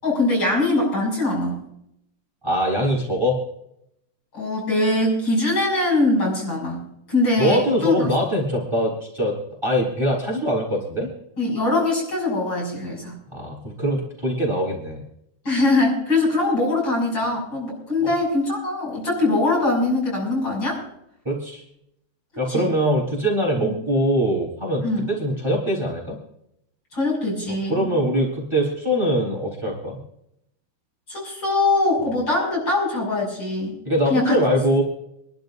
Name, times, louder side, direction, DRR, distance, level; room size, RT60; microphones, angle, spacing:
voice 1, 0.0-1.6 4.3-6.8 7.1-8.1 11.4-13.2 15.5-20.8 22.5-22.7 23.6-23.7 24.8-25.1 26.9-27.9 31.1-33.8 34.1-34.4, left 2 dB, 60° left, -3 dB, 7.3 m, -22 dB
voice 2, 2.4-3.4 7.4-9.3 9.6-11.1 13.3-15.0 18.0-18.1 21.2-21.6 22.4-26.2 27.7-30.0 32.0-32.1 33.9-34.8, equal, 15° right, -3 dB, 3.9 m, -22 dB
27.5 x 12.0 x 2.6 m, 0.77 s
omnidirectional pair, 2.4 m